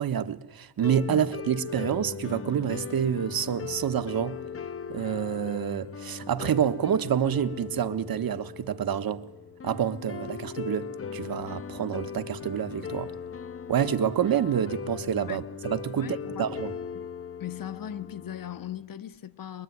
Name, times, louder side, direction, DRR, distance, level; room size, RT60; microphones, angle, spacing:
voice 1, 0.0-4.4 4.9-9.2 9.6-13.1 13.7-16.7, right 9 dB, 55° right, 1.3 m, -28 dB
sound 1, 0.8-18.8, left 6 dB, 35° left, 0.8 m, -39 dB
voice 2, 15.9-16.5 16.9-17.1 17.4-19.6, left 10 dB, 50° left, 1.2 m, -38 dB
23.5 x 22.5 x 9.5 m
cardioid pair, 115°, 42 cm